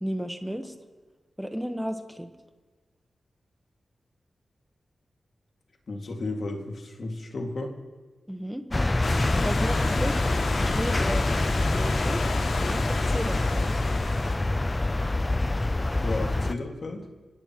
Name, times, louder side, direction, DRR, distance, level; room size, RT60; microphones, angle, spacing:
voice 1, 0.0-0.7 1.4-2.3 8.3-8.6 9.3-10.2 10.6-11.3 11.6-12.2 12.6-13.7, equal, 5° right, 6 dB, 1.1 m, -33 dB
voice 2, 5.9-7.8 15.9-17.0, left 2 dB, 55° left, 2 dB, 2.1 m, -33 dB
sound 1, 8.7-16.5, left 2 dB, 20° left, 0.4 m, -26 dB
Stream / Liquid, 9.0-14.4, left 3 dB, 90° left, 2.2 m, -33 dB
26.0 x 17.0 x 3.0 m, 1.3 s
wide cardioid pair, 145°, 0 cm